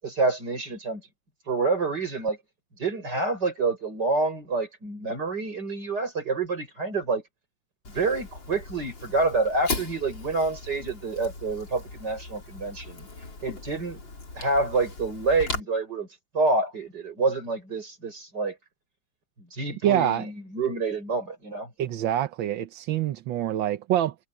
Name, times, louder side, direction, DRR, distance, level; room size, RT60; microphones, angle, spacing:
voice 1, 0.0-1.0 1.5-2.4 2.8-7.2 7.9-13.1 13.4-14.0 14.4-16.1 16.3-18.6 19.5-21.7, right 3 dB, 50° right, 7.3 m, -27 dB
Fire, 7.8-15.6, left 3 dB, 60° left, 4.7 m, -38 dB
voice 2, 19.8-20.3 21.8-24.1, right 12 dB, 70° right, 1.6 m, -25 dB
omnidirectional pair, 2.3 m